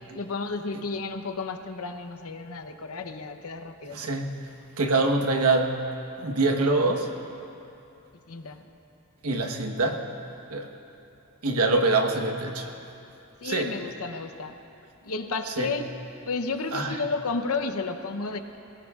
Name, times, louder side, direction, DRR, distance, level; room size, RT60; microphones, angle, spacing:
voice 1, 0.1-4.2 8.3-8.7 13.4-14.6 15.0-15.9 16.3-18.4, left 4 dB, 75° left, 8 dB, 0.8 m, -32 dB
voice 2, 3.9-5.8 6.2-7.1 9.2-10.0 10.5-10.7 11.4-12.7 13.4-13.7 15.5-15.7 16.7-17.0, right 2 dB, 85° right, 3 dB, 1.2 m, -25 dB
23.0 x 18.0 x 2.4 m, 2.8 s
head